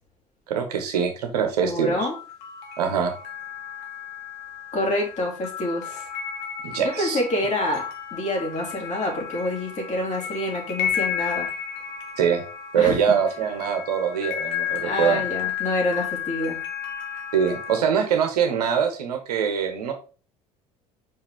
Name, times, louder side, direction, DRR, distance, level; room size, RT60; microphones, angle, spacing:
voice 1, 0.5-2.1 2.8-3.1 6.6-7.2 12.2-12.4 12.7-15.2 17.3-19.9, right 7 dB, 75° right, 6 dB, 1.2 m, -23 dB
voice 2, 1.6-2.1 4.7-6.1 6.8-11.5 12.8-13.0 14.8-16.6, left 1 dB, 35° left, -1 dB, 3.0 m, -27 dB
sound 1, 2.0-17.8, left 9 dB, 55° left, 1.2 m, -33 dB
5.7 x 4.9 x 3.6 m, 0.35 s
figure-of-eight pair, 60°, 20 cm